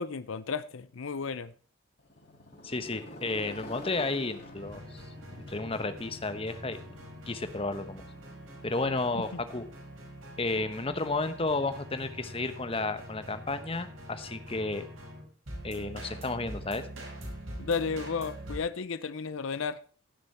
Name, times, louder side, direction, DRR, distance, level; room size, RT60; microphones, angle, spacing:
voice 1, 0.0-1.5 9.1-9.4 17.6-19.8, left 5 dB, 70° left, 15 dB, 0.6 m, -33 dB
Motorcycle, 2.0-10.0, left 1 dB, 50° left, 5.1 m, -49 dB
voice 2, 2.6-5.0 5.5-6.9 7.3-8.0 8.6-9.6 10.4-14.9 15.6-16.9, left 3 dB, 25° left, 10 dB, 1.0 m, -32 dB
sound 1, 4.5-18.6, right 1 dB, 75° right, 5.4 m, -44 dB
16.5 x 7.0 x 4.2 m, 0.41 s
head